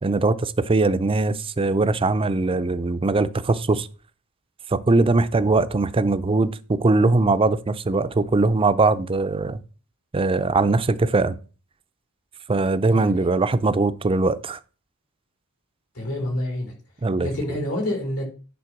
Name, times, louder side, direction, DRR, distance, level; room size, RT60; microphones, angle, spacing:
voice 1, 0.0-3.9 4.7-9.6 10.1-11.4 12.5-14.6 17.0-17.3, right 3 dB, 25° right, 0.5 m, -21 dB
voice 2, 12.9-13.3 15.9-16.7 17.2-18.2, left 1 dB, 85° left, 4.2 m, -28 dB
9.5 x 4.0 x 6.0 m
head